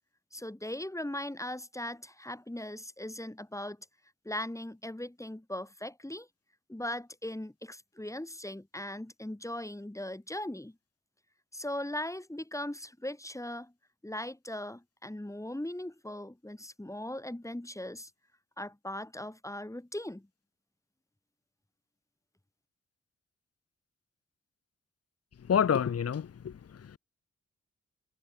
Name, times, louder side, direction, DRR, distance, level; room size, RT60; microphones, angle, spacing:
voice 1, 0.3-3.8 4.2-6.3 6.7-10.8 11.5-13.7 14.0-18.1 18.6-20.3, left 1 dB, 10° left, 3.4 m, -39 dB
voice 2, 25.5-27.0, left 8 dB, 55° left, 1.1 m, -28 dB
supercardioid pair, 40°, 30 cm